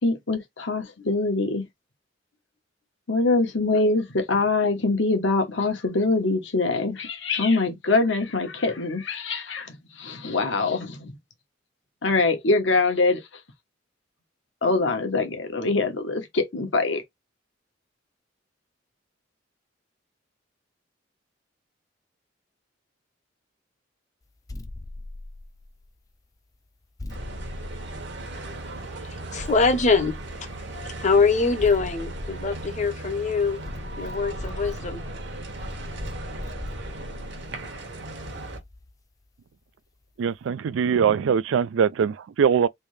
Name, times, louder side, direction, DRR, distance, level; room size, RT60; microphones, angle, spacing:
voice 1, 0.0-1.7 3.1-11.2 12.0-13.4 14.6-17.0, left 3 dB, 75° left, 1.1 m, -24 dB
sound 1, 24.5-26.0 27.0-28.6 29.4-30.8 31.6-33.2 33.7-38.9, left 2 dB, 20° left, 0.4 m, -39 dB
sound 2, 27.1-38.6, right 2 dB, 60° right, 1.0 m, -37 dB
voice 2, 29.3-30.1 31.0-33.6 34.0-35.0, left 4 dB, 40° left, 0.8 m, -23 dB
voice 3, 40.2-42.7, right 7 dB, 80° right, 0.3 m, -22 dB
3.4 x 2.7 x 3.2 m
head